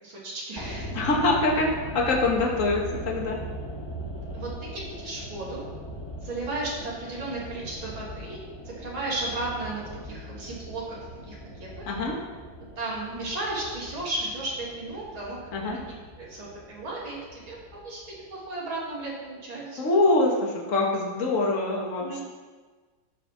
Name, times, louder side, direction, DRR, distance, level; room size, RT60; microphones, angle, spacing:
voice 1, 0.0-0.9 4.3-5.6 6.2-8.4 8.7-11.8 12.8-15.4 15.6-15.8 16.2-18.0 18.3-19.8 22.0-22.2, right 2 dB, 75° right, -6 dB, 3.8 m, -34 dB
sound 1, 0.6-18.8 19.0-19.1, equal, 15° left, 1.7 m, -40 dB
voice 2, 0.9-3.4 11.9-12.2 15.5-15.8 19.8-22.2, left 2 dB, 40° left, -1 dB, 2.1 m, -24 dB
13.5 x 9.0 x 6.0 m, 1.4 s
omnidirectional pair, 2.2 m